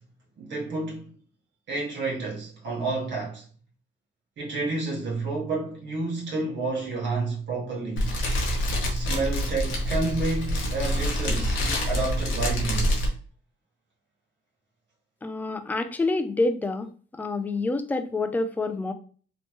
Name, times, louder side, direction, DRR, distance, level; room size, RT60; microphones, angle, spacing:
voice 1, 0.4-1.1 1.7-3.4 4.4-8.1 8.9-13.0, right 3 dB, 65° right, 1.0 m, -30 dB
Fire, 8.0-13.1, equal, 80° left, 0.9 m, -26 dB
voice 2, 15.2-16.9 17.2-18.9, left 2 dB, 10° left, 0.3 m, -27 dB
3.0 x 2.1 x 2.8 m
cardioid pair, 90°, 20 cm